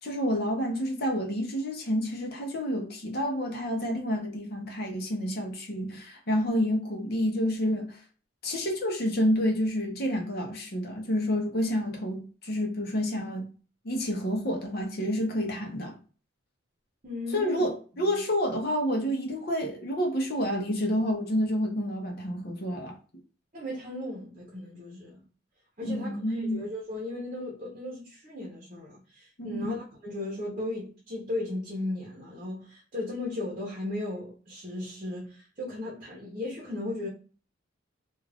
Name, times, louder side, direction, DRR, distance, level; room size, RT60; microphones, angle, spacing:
voice 1, 0.0-8.0 8.4-13.5 13.8-15.9 17.3-22.9 25.8-26.6 29.4-29.8, equal, 50° left, 0.7 m, -29 dB
voice 2, 17.0-17.7 17.9-18.2 23.5-25.2 25.8-37.1, left 2 dB, 35° right, 0.8 m, -36 dB
2.4 x 2.4 x 3.3 m
head